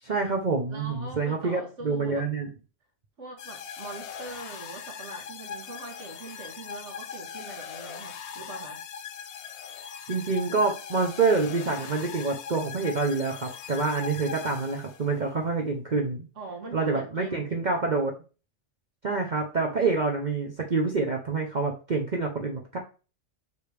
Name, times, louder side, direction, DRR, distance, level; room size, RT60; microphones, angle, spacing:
voice 1, 0.0-2.5 10.1-16.3 16.7-18.1 19.0-22.8, right 4 dB, 40° right, 1.0 m, -27 dB
voice 2, 0.7-2.3 3.2-8.8 16.4-17.8, right 3 dB, 80° right, 1.8 m, -42 dB
sound 1, 3.4-15.2, left 7 dB, 70° left, 1.0 m, -40 dB
6.7 x 4.9 x 3.4 m
omnidirectional pair, 1.3 m